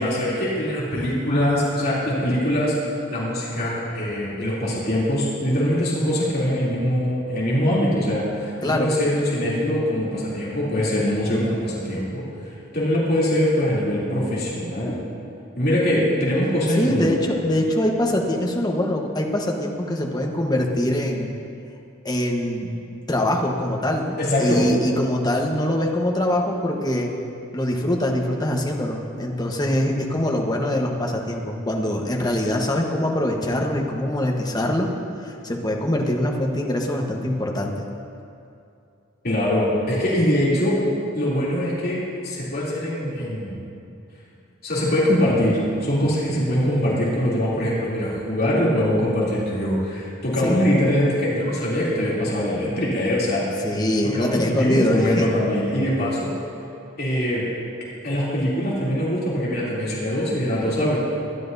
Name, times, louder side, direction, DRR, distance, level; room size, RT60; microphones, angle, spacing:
voice 1, 0.0-2.7 3.1-12.2 12.7-15.0 15.6-17.1 24.2-24.6 39.2-40.8 41.1-43.6 44.6-53.5 54.0-56.3 57.0-57.4 58.0-61.0, equal, 45° left, -7 dB, 3.0 m, -22 dB
voice 2, 16.8-21.3 22.0-22.7 23.1-27.1 27.5-34.9 35.2-37.7 50.4-50.6 53.6-55.3, left 1 dB, 20° left, 0 dB, 1.2 m, -23 dB
23.0 x 11.5 x 2.7 m, 2.6 s
head